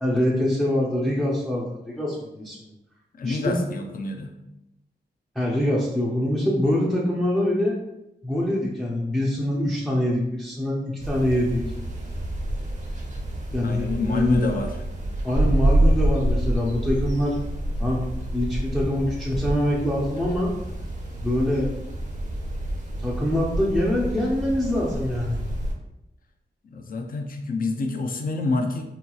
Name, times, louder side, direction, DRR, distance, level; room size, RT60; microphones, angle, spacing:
voice 1, 0.0-2.7 3.2-3.5 5.4-7.8 8.2-11.6 13.5-14.5 15.2-17.4 17.8-18.0 18.3-20.5 21.2-21.7 23.0-25.4, left 1 dB, 5° left, -6 dB, 0.5 m, -24 dB
voice 2, 3.2-4.3 13.6-14.8 26.7-28.8, left 3 dB, 50° left, 5 dB, 0.5 m, -27 dB
sound 1, 11.0-25.7, right 1 dB, 45° right, 0.7 m, -27 dB
3.8 x 2.9 x 2.3 m, 0.92 s
wide cardioid pair, 100°, 18 cm